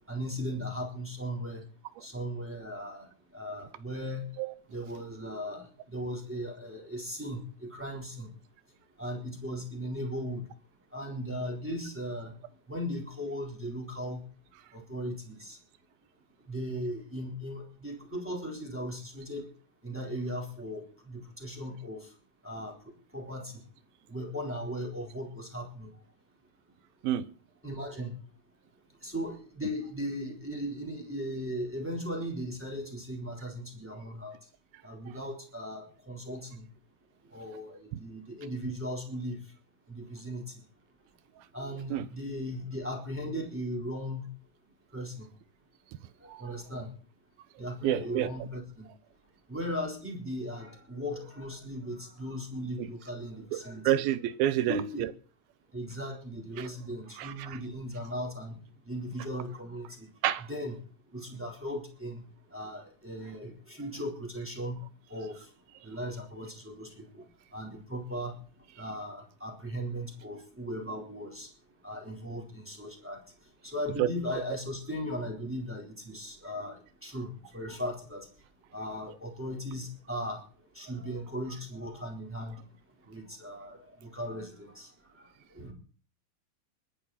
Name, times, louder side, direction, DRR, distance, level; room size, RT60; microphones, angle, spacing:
voice 1, 0.1-1.6 2.0-3.1 3.3-4.3 4.7-8.3 9.0-10.4 10.9-12.3 12.7-14.2 14.7-15.6 16.5-19.4 19.8-22.1 22.4-22.8 23.1-23.5 24.1-25.9 27.6-28.1 29.0-34.3 34.8-36.7 37.3-39.4 39.9-40.4 41.5-44.3 44.9-45.3 46.4-46.9 47.6-48.9 49.5-53.9 54.7-55.1 55.7-58.5 58.9-60.1 60.5-60.7 61.1-62.2 62.5-64.8 65.1-65.4 65.8-67.2 67.5-68.3 68.8-71.5 71.8-73.2 73.6-76.8 77.0-78.3 78.7-80.4 80.8-82.6 83.1-84.9 85.6-85.7, equal, 5° right, 3.5 m, -37 dB
voice 2, 47.8-48.3 52.8-52.9 53.5-55.1 56.6-56.7 57.2-57.6 60.2-60.5 74.0-74.1, right 12 dB, 75° right, 2.6 m, -29 dB
22.0 x 10.0 x 4.3 m
omnidirectional pair, 4.5 m